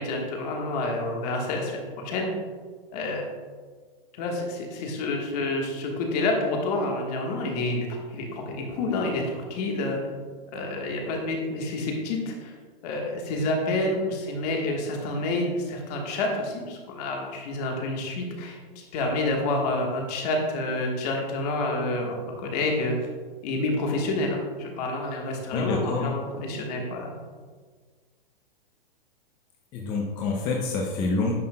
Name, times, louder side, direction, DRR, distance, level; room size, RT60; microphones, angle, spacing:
voice 1, 0.0-2.3 2.9-3.2 4.1-10.0 10.5-12.5 12.8-22.9 23.4-27.1, left 2 dB, 45° left, 1 dB, 1.3 m, -28 dB
voice 2, 25.5-26.1 29.7-31.3, left 3 dB, 15° left, -1 dB, 0.4 m, -27 dB
9.6 x 5.5 x 2.2 m, 1.5 s
hypercardioid pair, 155°, 29 cm